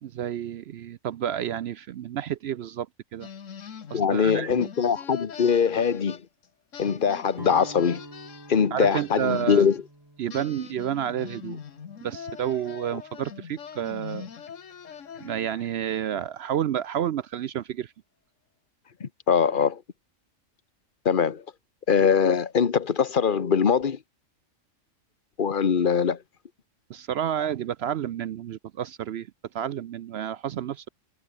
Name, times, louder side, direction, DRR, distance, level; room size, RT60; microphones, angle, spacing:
voice 1, 0.0-2.9 3.1-3.3 3.9-4.7 8.7-9.7 10.2-11.6 12.0-14.3 15.2-17.9 26.9-29.3 29.5-30.9, right 10 dB, 65° right, 0.7 m, -30 dB
sound 1, 3.2-6.5 6.7-9.8 10.3-15.6, left 7 dB, 75° left, 1.7 m, -42 dB
voice 2, 3.9-6.2 6.8-8.0 8.5-9.8 19.0-19.8 21.0-21.4 21.9-24.0 25.4-26.2, left 6 dB, 45° left, 1.2 m, -22 dB
Guitar, 7.3-13.4, right 1 dB, 15° right, 3.2 m, -48 dB
omnidirectional pair, 1.3 m